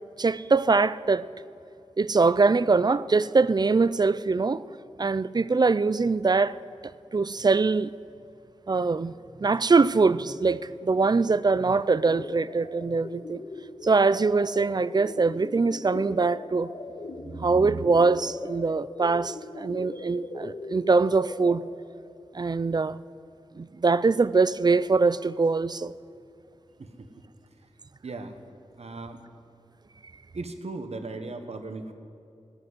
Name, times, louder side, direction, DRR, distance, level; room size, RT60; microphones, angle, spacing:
voice 1, 0.2-1.3 2.0-4.6 5.0-6.6 7.1-7.9 8.7-9.1 9.4-13.4 13.8-16.7 17.2-21.6 22.3-23.0 23.6-25.9, right 4 dB, 35° right, 0.4 m, -23 dB
sound 1, 12.0-21.6, left 2 dB, 65° left, 1.5 m, -40 dB
voice 2, 28.0-28.4 28.8-29.2 30.3-31.9, right 3 dB, 65° right, 1.1 m, -37 dB
16.0 x 6.3 x 9.6 m
cardioid pair, 50°, 12 cm